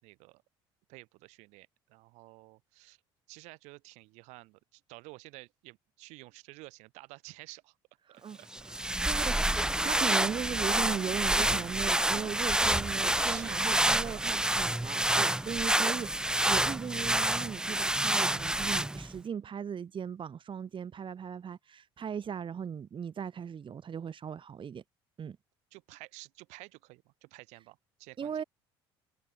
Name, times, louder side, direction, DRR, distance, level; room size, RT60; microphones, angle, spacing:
voice 1, 0.0-0.4 0.9-3.0 3.3-7.8 8.1-9.4 13.1-14.7 25.7-28.4, right 24 dB, 75° right, 4.2 m, -51 dB
sound 1, 8.5-19.2, right 1 dB, 5° right, 0.6 m, -28 dB
voice 2, 8.7-24.8 25.2-25.4 28.2-28.4, right 7 dB, 45° right, 2.9 m, -38 dB
hypercardioid pair, 60°, 12 cm